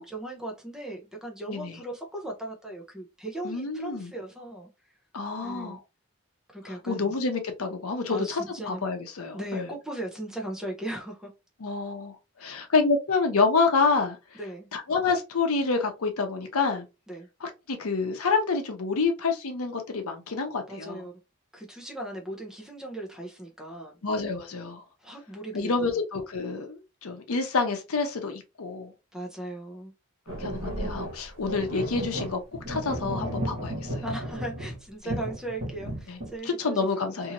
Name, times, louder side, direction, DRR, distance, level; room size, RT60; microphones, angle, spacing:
voice 1, 0.0-4.7 5.4-5.8 6.5-7.1 8.1-8.8 9.3-11.3 12.4-12.6 14.4-14.7 17.1-17.3 20.7-21.1 21.5-24.0 25.0-25.9 29.1-29.9 34.0-36.9 37.1-37.3, right 1 dB, 5° right, 0.6 m, -37 dB
voice 2, 3.4-4.1 5.1-5.8 6.9-9.7 11.6-14.4 14.7-16.9 17.4-21.0 24.0-24.8 25.5-28.9 30.4-32.4 32.7-34.0 36.1-36.2 36.6-37.3, left 4 dB, 75° left, 0.7 m, -28 dB
sound 1, 30.3-34.8 35.1-36.3, right 1 dB, 50° right, 1.3 m, -33 dB
2.7 x 2.6 x 2.9 m
head